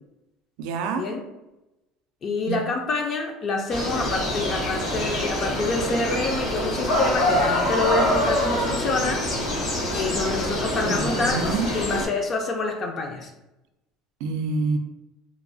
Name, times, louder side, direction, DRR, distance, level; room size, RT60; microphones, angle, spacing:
voice 1, 0.6-1.0 2.5-2.6 9.9-10.1 10.7-11.7 14.2-14.8, right 4 dB, 80° right, 6 dB, 0.3 m, -27 dB
voice 2, 2.2-9.2 9.9-13.3, left 3 dB, 35° left, 2 dB, 0.4 m, -27 dB
sound 1, 3.7-12.1, left 1 dB, 80° left, 1.1 m, -25 dB
2.9 x 2.0 x 2.6 m, 0.95 s
cardioid pair, 145°, 0 cm